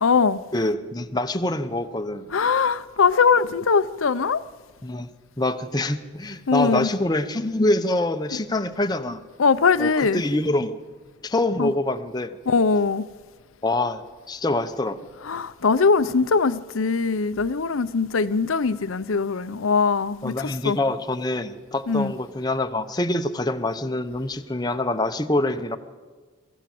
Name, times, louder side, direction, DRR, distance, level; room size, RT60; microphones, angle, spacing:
voice 1, 0.0-0.4 2.3-4.4 6.5-6.9 9.4-10.2 11.6-11.7 12.5-13.0 15.2-20.8 21.9-22.1, left 5 dB, 85° left, 0.7 m, -21 dB
voice 2, 0.5-2.2 4.8-5.1 5.4-9.2 9.8-10.8 11.2-12.3 13.6-14.0 14.3-15.0 20.2-25.8, left 1 dB, 20° left, 0.8 m, -25 dB
23.5 x 15.0 x 7.7 m
head